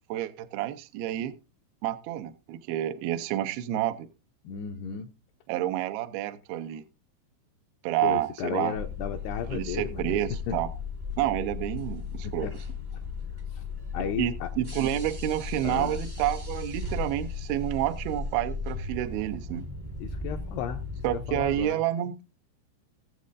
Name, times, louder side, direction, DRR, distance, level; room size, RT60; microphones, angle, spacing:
voice 1, 0.1-1.3 1.8-4.1 5.5-6.8 7.8-8.8 9.5-10.7 11.2-12.5 14.2-19.7 21.0-22.2, right 13 dB, 80° right, 8 dB, 2.2 m, -29 dB
voice 2, 4.4-5.1 8.0-10.2 10.5-10.6 12.2-12.5 13.5-13.6 13.9-14.5 15.6-16.0 20.0-20.8 21.3-21.8, left 8 dB, 80° left, 5 dB, 2.4 m, -34 dB
sound 1, 8.7-21.7, left 4 dB, 30° right, 0.8 m, -36 dB
19.5 x 7.4 x 2.5 m, 0.27 s
omnidirectional pair, 5.2 m